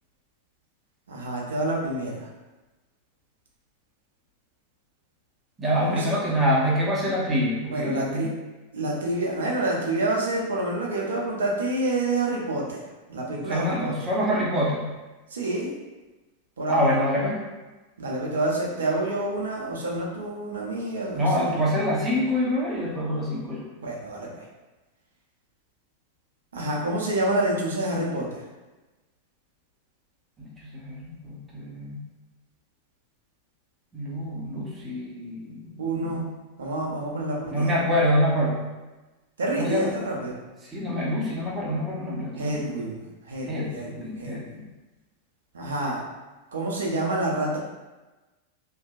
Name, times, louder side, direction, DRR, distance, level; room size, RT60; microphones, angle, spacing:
voice 1, 1.1-2.3 5.8-6.1 7.7-8.3 8.7-12.8 13.1-13.9 15.3-15.7 16.6-16.9 18.0-21.6 23.8-24.5 26.5-28.4 35.8-36.3 36.6-37.9 39.4-40.4 42.3-44.4 45.5-46.0 46.5-47.6, right 1 dB, 65° right, -2 dB, 0.5 m, -28 dB
voice 2, 5.6-8.3 13.4-14.9 16.7-17.4 21.1-23.7 30.4-32.0 33.9-36.1 37.5-38.6 39.6-39.9 40.7-42.7 43.5-44.6, equal, 15° right, -5 dB, 0.7 m, -26 dB
2.6 x 2.1 x 2.4 m, 1.2 s
figure-of-eight pair, 90°, 0 cm